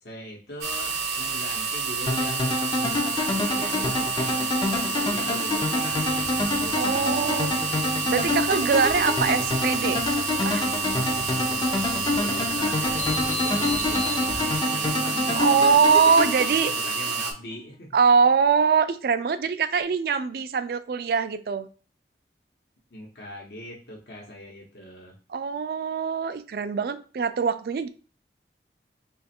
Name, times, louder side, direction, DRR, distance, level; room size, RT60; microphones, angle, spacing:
voice 1, 0.0-6.2 6.6-7.2 11.4-18.0 22.9-25.1, left 1 dB, 70° left, 0.9 m, -41 dB
sound 1, 0.6-17.3, right 4 dB, 85° right, 0.7 m, -29 dB
sound 2, 2.1-17.1, left 2 dB, 25° left, 0.4 m, -27 dB
sound 3, 5.9-14.6, left 2 dB, 40° left, 0.8 m, -38 dB
voice 2, 6.8-7.6 8.1-10.0 10.4-10.7 15.3-16.7 17.9-21.7 25.3-27.9, right 6 dB, 55° right, 0.3 m, -23 dB
3.2 x 2.4 x 4.2 m
head